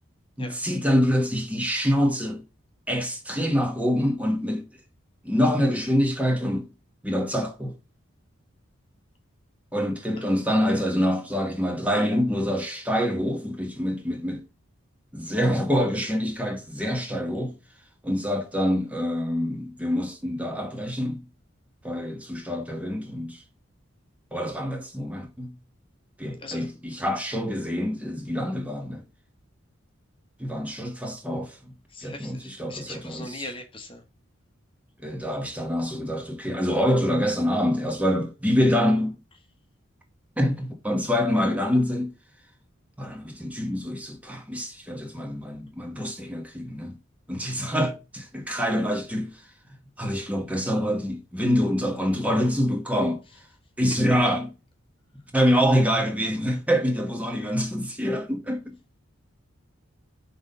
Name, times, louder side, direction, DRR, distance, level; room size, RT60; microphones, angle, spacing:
voice 1, 0.4-2.4 2.9-4.7 5.2-6.7 7.0-7.8 9.7-14.4 15.1-17.6 18.0-21.2 21.8-23.4 24.3-25.5 26.2-29.0 30.4-31.6 32.0-33.5 35.0-39.2 40.4-42.1 43.0-47.0 47.3-49.4 50.0-53.2 53.8-54.5 55.3-58.8, equal, 5° right, 1.0 m, -26 dB
voice 2, 26.4-26.7 31.9-34.0 47.4-47.6, left 2 dB, 25° left, 1.0 m, -40 dB
6.0 x 3.8 x 5.3 m
head